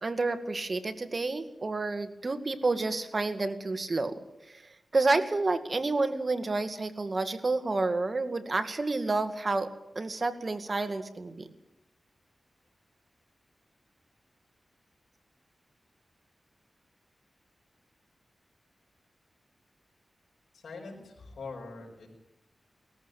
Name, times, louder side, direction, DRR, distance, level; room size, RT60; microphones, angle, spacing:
voice 1, 0.0-4.2 4.5-9.7 10.0-11.5, right 3 dB, 45° right, 9 dB, 2.0 m, -29 dB
voice 2, 20.5-22.1, left 3 dB, 80° left, -2 dB, 5.0 m, -43 dB
19.5 x 14.5 x 9.3 m, 0.87 s
cardioid pair, 60°, 0 cm